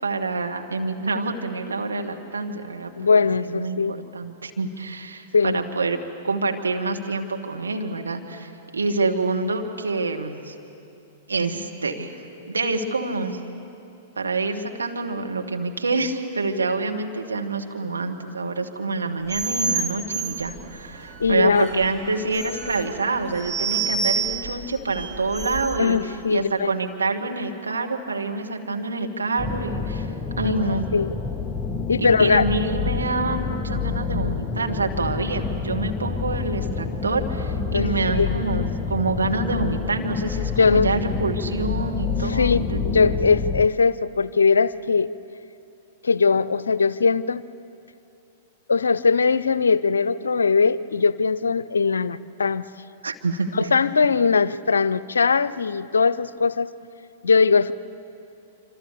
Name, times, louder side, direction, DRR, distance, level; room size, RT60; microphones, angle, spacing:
voice 1, 0.0-2.9 3.4-6.0 6.2-10.5 11.3-12.2 12.5-13.4 14.2-26.0 26.3-30.1 30.4-30.9 32.0-43.1 53.0-53.7, right 3 dB, 75° right, 3 dB, 1.8 m, -27 dB
voice 2, 3.0-4.0 5.3-5.6 21.2-21.7 25.8-26.7 30.4-30.5 30.9-31.1 31.9-32.4 37.7-38.3 40.6-40.9 42.2-45.1 46.0-47.4 48.7-52.7 53.5-56.7 57.2-57.7, left 5 dB, 75° left, 18 dB, 0.6 m, -20 dB
sound 1, 19.3-25.9, right 4 dB, 30° right, 2.4 m, -29 dB
sound 2, 29.4-43.7, left 5 dB, 15° left, 0.8 m, -28 dB
26.5 x 26.0 x 6.8 m, 2.7 s
figure-of-eight pair, 100°, 0 cm